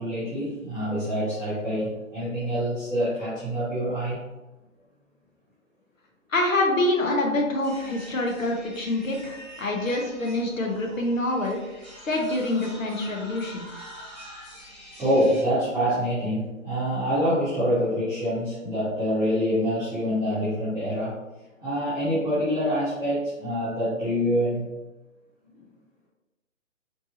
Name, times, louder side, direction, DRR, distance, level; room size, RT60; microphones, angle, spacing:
voice 1, 0.0-4.2 15.0-21.2 21.6-24.7, equal, 5° left, -22 dB, 1.0 m, -26 dB
voice 2, 6.3-11.6 12.0-13.7, left 2 dB, 70° left, 1 dB, 1.2 m, -26 dB
sound 1, 7.6-15.4, equal, 35° left, 1.3 m, -45 dB
4.5 x 2.7 x 2.8 m, 1.1 s
hypercardioid pair, 175°, 41 cm